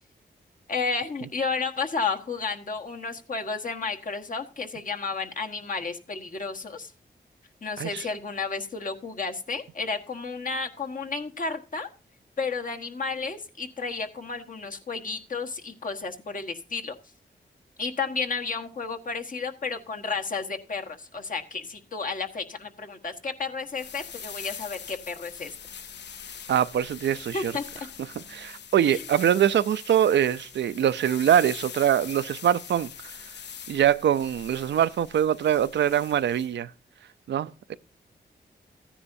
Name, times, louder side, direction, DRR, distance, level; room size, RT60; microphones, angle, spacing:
voice 1, 0.7-6.9 7.6-11.9 12.4-16.9 17.8-25.5 27.3-27.9 28.8-29.0, left 4 dB, 50° left, 1.4 m, -32 dB
sound 1, 23.7-36.5, left 7 dB, 80° left, 0.6 m, -43 dB
voice 2, 26.5-27.5 28.3-32.9 33.7-36.7 37.3-37.7, right 10 dB, 85° right, 0.5 m, -23 dB
15.0 x 9.9 x 2.7 m
wide cardioid pair, 85°, 18 cm